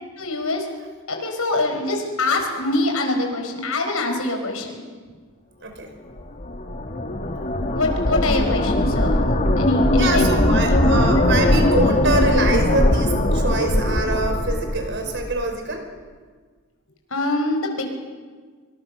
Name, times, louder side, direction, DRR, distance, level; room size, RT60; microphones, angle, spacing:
voice 1, 0.2-0.7 1.1-4.8 7.7-10.3 10.7-11.0 17.1-17.8, left 2 dB, 75° left, 4 dB, 5.3 m, -24 dB
voice 2, 5.6-5.9 10.0-15.9, right 2 dB, 55° right, 4 dB, 5.1 m, -25 dB
sound 1, 6.2-15.4, left 1 dB, 40° left, 2.1 m, -20 dB
26.0 x 24.5 x 6.7 m, 1.5 s
head